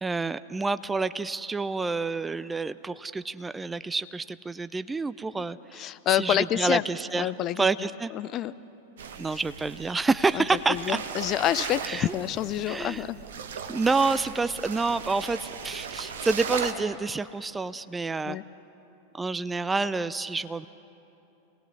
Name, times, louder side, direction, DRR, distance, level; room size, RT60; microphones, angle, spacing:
voice 1, 0.0-7.3 7.6-8.1 9.2-11.0 11.8-12.1 12.7-13.0 13.7-18.4 19.1-20.7, right 3 dB, 10° right, 15 dB, 0.5 m, -28 dB
voice 2, 5.7-6.8 7.1-8.5 9.3-9.4 10.3-13.2 18.3-18.4, left 12 dB, 35° left, 14 dB, 0.5 m, -28 dB
sound 1, 9.0-16.7, right 6 dB, 60° right, 1.2 m, -37 dB
26.5 x 19.5 x 6.2 m, 2.9 s
figure-of-eight pair, 90°, 0 cm